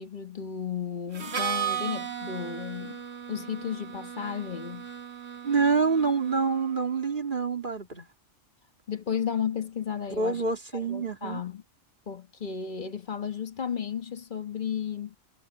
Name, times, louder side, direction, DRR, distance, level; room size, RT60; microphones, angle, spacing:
voice 1, 0.0-3.0 3.3-4.9 8.9-10.4 10.7-11.6 12.1-15.2, left 7 dB, 45° left, 1.4 m, -33 dB
Harmonica, 1.1-6.9, right 8 dB, 85° right, 1.9 m, -36 dB
voice 2, 5.4-8.1 10.2-11.4, right 4 dB, 45° right, 3.0 m, -26 dB
omnidirectional pair, 1.2 m